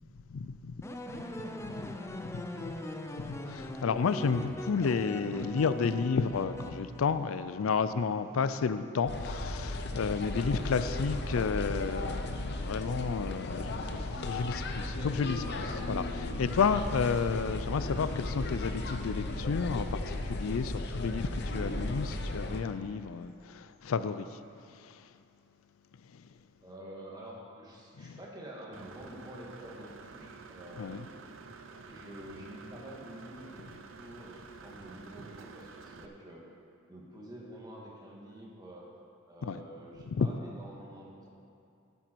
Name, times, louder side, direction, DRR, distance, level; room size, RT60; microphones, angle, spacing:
voice 1, 0.3-0.8 1.1-1.2 1.6-2.8 3.2-24.2 24.8-25.0 26.1-26.2 28.0-28.2 30.8-31.0 39.4-39.6 40.1-40.3, left 5 dB, 85° left, 0.4 m, -32 dB
sound 1, 0.8-7.5, left 1 dB, 15° left, 0.6 m, -41 dB
sound 2, 9.1-22.6, left 2 dB, 55° left, 0.8 m, -35 dB
voice 2, 26.6-31.1 31.9-33.7 34.0-36.4 36.9-38.8 39.3-41.3, right 1 dB, 20° right, 1.9 m, -47 dB
Engine / Mechanisms, 28.7-36.1, right 4 dB, 65° right, 0.7 m, -50 dB
12.0 x 9.1 x 4.6 m
head